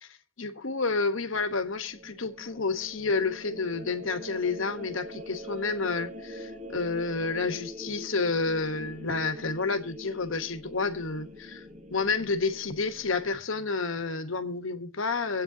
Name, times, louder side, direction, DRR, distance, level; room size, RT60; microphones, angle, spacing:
voice 1, 0.0-15.4, left 4 dB, 70° left, 1.2 m, -30 dB
sound 1, 1.4-13.4, left 1 dB, 35° right, 1.7 m, -43 dB
25.0 x 8.6 x 2.8 m
head